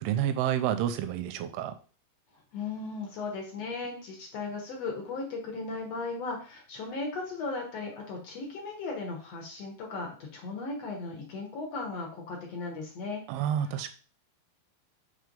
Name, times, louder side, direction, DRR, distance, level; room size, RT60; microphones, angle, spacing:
voice 1, 0.0-1.7 13.3-13.9, right 10 dB, 85° right, 8 dB, 2.6 m, -29 dB
voice 2, 2.5-13.2 13.6-13.9, left 3 dB, 65° left, 1 dB, 1.6 m, -37 dB
5.8 x 3.3 x 5.2 m, 0.39 s
omnidirectional pair, 4.4 m